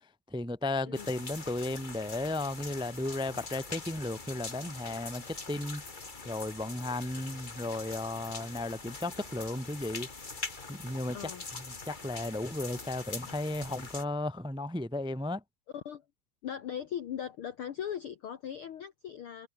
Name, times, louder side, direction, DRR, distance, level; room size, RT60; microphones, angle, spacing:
voice 1, 0.3-5.8 6.2-10.1 10.7-11.3 11.9-15.4, left 2 dB, 5° right, 0.8 m, -34 dB
sound 1, 0.9-14.0, left 3 dB, 25° left, 1.0 m, -43 dB
voice 2, 11.1-11.4 15.7-16.0 16.4-19.5, left 9 dB, 65° left, 1.3 m, -39 dB
omnidirectional pair, 3.8 m